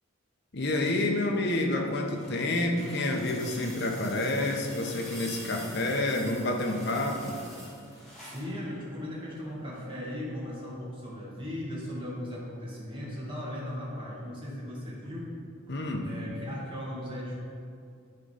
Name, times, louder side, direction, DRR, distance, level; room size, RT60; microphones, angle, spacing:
voice 1, 0.5-7.4 15.7-16.1, left 2 dB, 55° left, 2 dB, 1.0 m, -29 dB
sound 1, 1.7-8.5 9.8-9.9, equal, ahead, 2.0 m, -46 dB
voice 2, 8.2-15.3 16.0-17.4, left 1 dB, 25° right, -7 dB, 1.7 m, -37 dB
10.5 x 3.8 x 5.6 m, 2.4 s
head